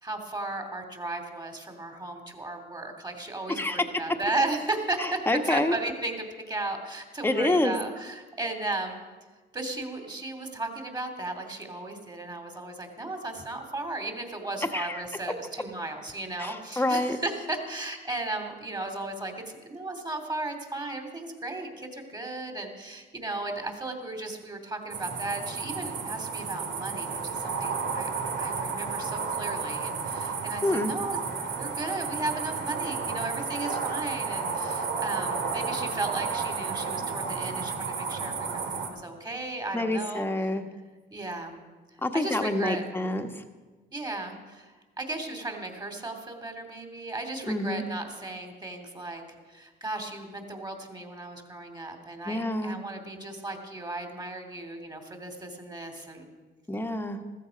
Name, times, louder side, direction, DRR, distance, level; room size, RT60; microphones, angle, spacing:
voice 1, 0.0-5.2 5.4-9.0 9.5-28.1 28.4-31.2 31.6-40.3 41.1-41.6 41.9-42.8 43.9-49.2 49.5-56.3, right 2 dB, 20° right, 5 dB, 2.7 m, -35 dB
voice 2, 5.0-5.7 7.2-7.7 14.7-15.0 16.4-17.2 30.6-30.9 39.7-40.6 42.0-43.3 47.5-47.8 52.2-52.8 56.7-57.2, left 1 dB, 10° left, 5 dB, 1.4 m, -27 dB
sound 1, 24.9-38.9, right 5 dB, 70° right, 2.1 m, -32 dB
15.0 x 14.0 x 5.2 m, 1.3 s
cardioid pair, 90°, 20 cm